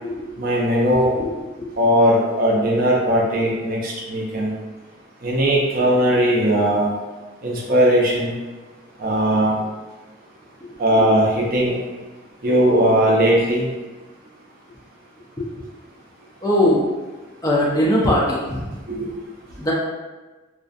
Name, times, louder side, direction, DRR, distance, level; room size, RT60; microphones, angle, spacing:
voice 1, 0.4-1.1 1.8-4.5 5.2-6.9 7.4-8.3 9.0-9.6 10.8-11.8 12.4-13.6 18.9-19.1, equal, 45° right, -4 dB, 0.5 m, -18 dB
voice 2, 1.2-1.7 10.7-10.8 15.4-15.5 16.4-16.8 17.4-18.7 19.6-19.7, left 1 dB, 15° left, -5 dB, 0.4 m, -20 dB
2.5 x 2.3 x 2.5 m, 1.2 s
head